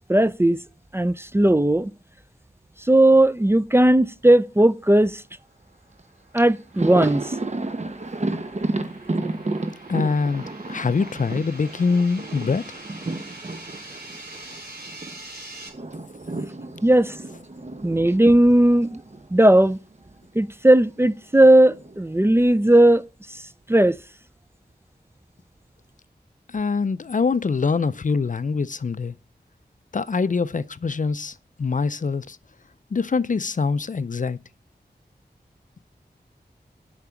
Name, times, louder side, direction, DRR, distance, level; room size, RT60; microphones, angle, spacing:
voice 1, 0.1-0.6 0.9-1.9 2.9-5.2 6.3-7.3 16.8-17.2 17.8-19.0 19.3-19.8 20.4-23.0 23.7-24.0, right 1 dB, 15° right, 0.4 m, -17 dB
sound 1, 5.3-15.7, right 2 dB, 60° right, 4.3 m, -44 dB
Thunder, 6.0-6.1 6.4-15.2 15.4-19.8 20.0-20.2 21.3-22.0, right 2 dB, 40° right, 0.9 m, -32 dB
voice 2, 9.9-12.6 26.5-29.1 29.9-32.4 32.9-34.4, left 4 dB, 50° left, 0.5 m, -24 dB
8.3 x 5.9 x 6.9 m
wide cardioid pair, 45°, 18 cm